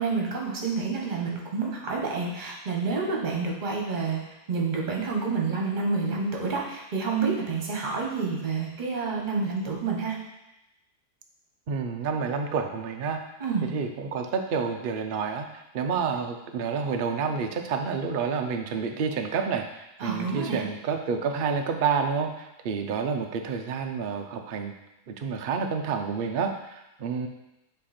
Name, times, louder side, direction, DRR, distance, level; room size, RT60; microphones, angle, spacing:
voice 1, 0.0-4.2 4.5-10.1 13.4-13.7 20.0-20.6, right 4 dB, 35° right, -1 dB, 1.2 m, -28 dB
voice 2, 11.7-13.2 13.6-15.5 15.7-24.7 25.1-27.3, right 5 dB, 85° right, 4 dB, 0.4 m, -29 dB
7.5 x 3.3 x 4.3 m, 0.92 s
omnidirectional pair, 1.7 m